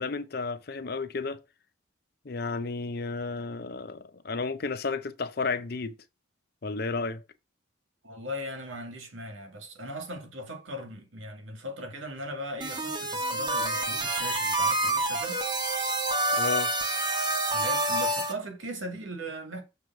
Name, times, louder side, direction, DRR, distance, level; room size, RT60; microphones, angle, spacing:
voice 1, 0.0-1.4 2.2-5.9 6.6-7.2 16.4-16.7, left 4 dB, 50° left, 0.6 m, -32 dB
voice 2, 8.0-15.4 17.5-19.6, equal, 85° right, 1.9 m, -39 dB
sound 1, 12.6-18.3, right 2 dB, 25° right, 1.0 m, -28 dB
6.8 x 3.1 x 5.8 m
head